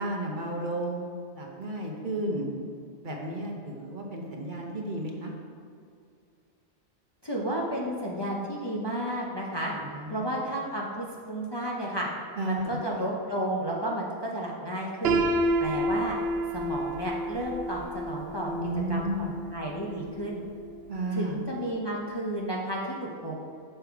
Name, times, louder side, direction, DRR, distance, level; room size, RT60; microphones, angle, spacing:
voice 1, 0.0-2.5 3.0-5.3 9.7-10.4 12.4-12.8 18.5-19.4 20.9-21.4, right 1 dB, 50° right, 0 dB, 1.0 m, -33 dB
voice 2, 7.2-9.7 10.1-12.1 12.4-15.2 15.6-16.1 16.5-18.5 18.9-20.4 21.1-23.4, right 1 dB, 25° left, -4 dB, 0.7 m, -32 dB
Piano, 15.0-20.9, right 1 dB, 70° right, 0.8 m, -30 dB
6.6 x 5.5 x 4.6 m, 2.3 s
omnidirectional pair, 1.1 m